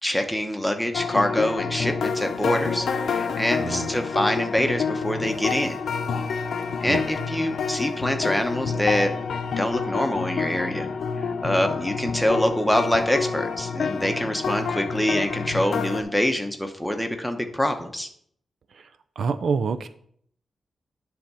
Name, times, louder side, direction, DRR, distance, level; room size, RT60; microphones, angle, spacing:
voice 1, 0.0-5.8 6.8-9.1 9.6-10.9 11.2-18.1, left 1 dB, 5° left, 5 dB, 0.9 m, -25 dB
sound 1, 0.9-16.0, left 5 dB, 75° left, 0.7 m, -28 dB
voice 2, 19.2-19.9, right 5 dB, 65° right, 11 dB, 0.5 m, -26 dB
10.0 x 3.5 x 5.5 m, 0.63 s
wide cardioid pair, 115°, 0 cm